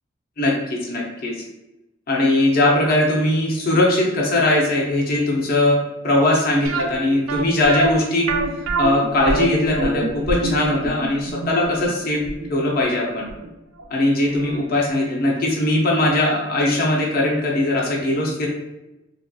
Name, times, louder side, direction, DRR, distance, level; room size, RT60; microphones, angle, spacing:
voice 1, 0.4-1.4 2.1-8.4 8.8-13.3 13.9-18.5, left 1 dB, 50° left, -2 dB, 0.5 m, -20 dB
sound 1, 6.6-13.5 13.8-13.9 14.4-14.6 14.9-15.0, right 3 dB, 85° right, 0.4 m, -25 dB
2.8 x 2.6 x 2.3 m, 0.98 s
head